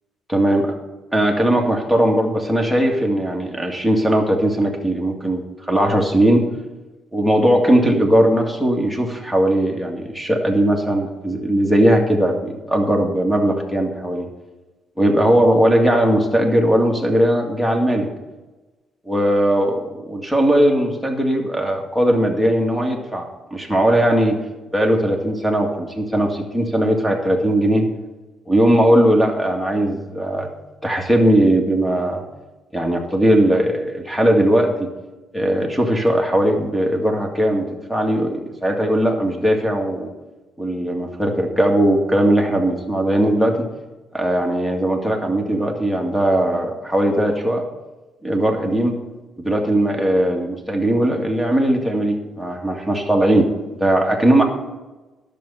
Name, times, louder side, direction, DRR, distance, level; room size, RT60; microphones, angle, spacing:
voice 1, 0.3-0.7 1.1-6.4 7.1-14.3 15.0-18.1 19.1-24.4 24.7-27.9 28.5-30.5 30.8-32.2 32.7-34.9 35.3-40.1 40.6-43.7 44.1-47.6 48.2-49.0 49.4-53.5 53.8-54.4, right 1 dB, 5° left, 2 dB, 2.0 m, -18 dB
11.0 x 6.8 x 5.7 m, 1.2 s
cardioid pair, 90°, 0 cm